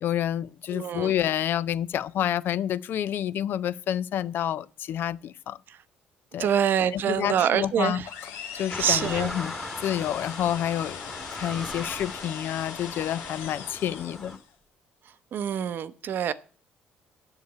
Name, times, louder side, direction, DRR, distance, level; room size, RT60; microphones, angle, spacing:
voice 1, 0.0-5.6 6.3-6.5 6.9-8.0 8.6-9.5 9.8-14.4, left 10 dB, 65° left, 0.4 m, -28 dB
voice 2, 0.7-1.1 6.4-8.1 8.5-9.3 15.3-16.3, right 9 dB, 60° right, 0.7 m, -26 dB
sound 1, 8.0-14.5, left 8 dB, 90° left, 1.2 m, -40 dB
sound 2, 8.7-14.4, left 1 dB, 10° left, 1.3 m, -39 dB
8.0 x 6.7 x 8.1 m
cardioid pair, 85°, 4 cm